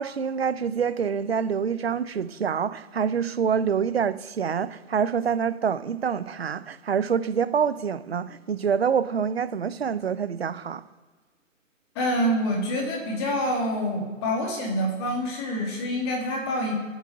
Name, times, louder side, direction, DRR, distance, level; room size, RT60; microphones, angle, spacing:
voice 1, 0.0-10.8, right 7 dB, 50° right, 0.9 m, -26 dB
voice 2, 11.9-16.7, equal, 20° left, 3.1 m, -26 dB
12.0 x 8.3 x 7.8 m
hypercardioid pair, 155°, 40 cm